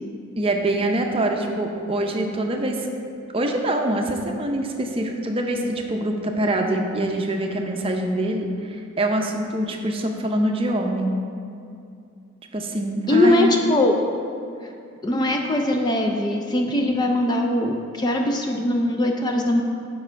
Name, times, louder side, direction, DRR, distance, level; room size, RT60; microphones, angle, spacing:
voice 1, 0.4-2.9 3.3-11.2 12.5-13.5, right 1 dB, 25° right, 2 dB, 0.6 m, -24 dB
voice 2, 13.1-13.9 15.0-19.6, left 1 dB, 20° left, 2 dB, 0.4 m, -21 dB
8.2 x 5.5 x 4.5 m, 2.5 s
head